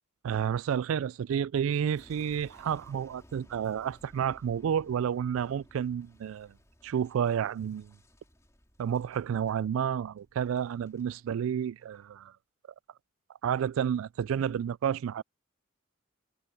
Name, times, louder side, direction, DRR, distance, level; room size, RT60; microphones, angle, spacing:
voice 1, 0.2-6.5 6.8-7.9 8.8-12.3 13.4-15.2, right 8 dB, 80° right, 0.3 m, -30 dB
Boom, 1.7-11.1 11.6-12.1, equal, 15° left, 3.9 m, -59 dB
head